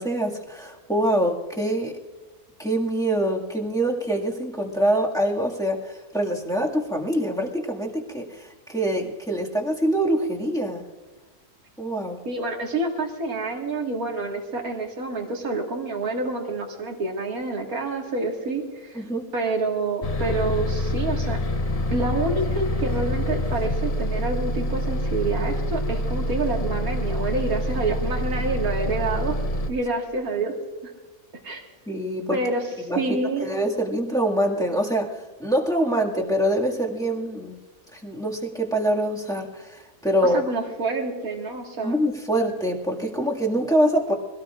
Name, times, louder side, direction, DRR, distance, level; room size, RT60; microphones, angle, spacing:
voice 1, 0.0-2.0 2.6-10.9 11.8-12.2 18.9-19.3 31.9-32.4 32.9-37.6 37.9-40.4 41.8-44.1, right 1 dB, ahead, -2 dB, 1.9 m, -25 dB
voice 2, 12.3-19.0 19.3-21.4 21.9-29.4 29.7-30.5 30.8-30.9 31.4-31.6 32.3-32.7 33.0-33.5 40.3-42.0, right 3 dB, 70° right, 1 dB, 2.4 m, -27 dB
Bus, 20.0-29.7, equal, 35° left, 0.7 m, -26 dB
24.0 x 17.5 x 2.5 m, 1.3 s
omnidirectional pair, 1.6 m